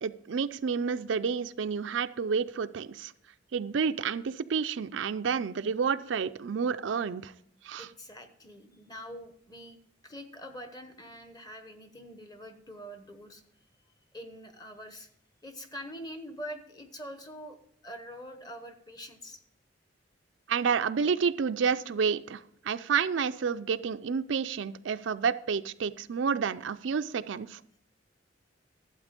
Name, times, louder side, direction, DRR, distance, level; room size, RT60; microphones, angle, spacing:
voice 1, 0.0-3.1 3.5-7.3 7.6-7.9 20.5-27.8, right 6 dB, 70° right, 11 dB, 0.4 m, -30 dB
voice 2, 7.8-13.4 14.1-15.1 15.4-17.6 17.8-19.4, equal, 20° left, 7 dB, 1.0 m, -44 dB
12.5 x 7.9 x 5.2 m, 0.69 s
head